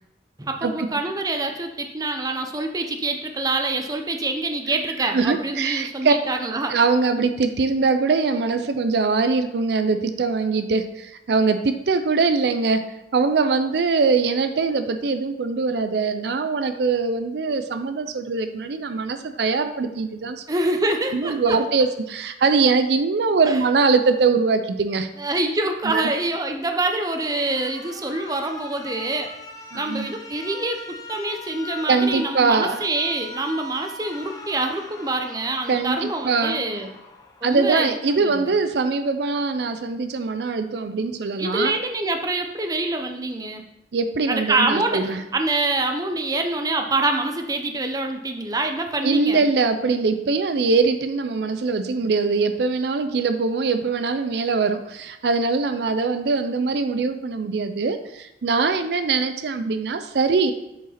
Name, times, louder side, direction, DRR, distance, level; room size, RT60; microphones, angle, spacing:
voice 1, 0.4-6.7 20.5-21.5 25.2-29.3 29.7-36.9 37.4-38.5 41.4-43.6 44.3-45.0 45.3-49.5, right 2 dB, 20° right, 4 dB, 0.6 m, -25 dB
voice 2, 5.1-6.1 6.7-20.4 21.1-25.1 25.8-26.1 29.7-30.1 31.9-32.8 35.7-36.8 37.4-41.7 43.9-45.2 49.0-60.5, right 4 dB, 65° right, 9 dB, 0.4 m, -22 dB
Alarm, 26.8-37.8, left 2 dB, 20° left, 0.8 m, -40 dB
7.1 x 4.8 x 4.2 m, 0.89 s
head